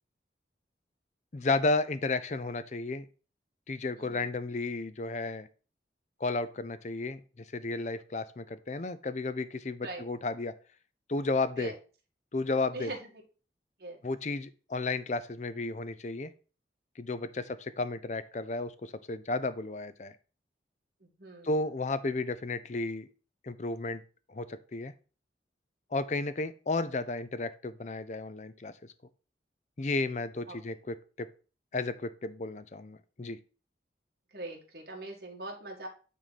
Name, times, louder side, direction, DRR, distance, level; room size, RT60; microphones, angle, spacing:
voice 1, 1.3-3.1 3.7-5.5 6.2-7.2 7.5-10.5 11.1-11.7 12.3-12.9 14.0-16.3 17.0-20.1 21.4-23.1 23.4-24.0 24.3-24.9 25.9-28.7 29.8-31.3 31.7-33.4, left 3 dB, 40° left, 14 dB, 0.5 m, -33 dB
voice 2, 4.0-4.3 9.8-10.0 11.5-11.8 12.7-13.0 13.8-14.0 17.4-17.5 21.0-21.5 30.5-30.6 34.3-35.9, right 2 dB, 55° right, 0 dB, 2.0 m, -42 dB
9.0 x 3.8 x 4.1 m, 0.36 s
head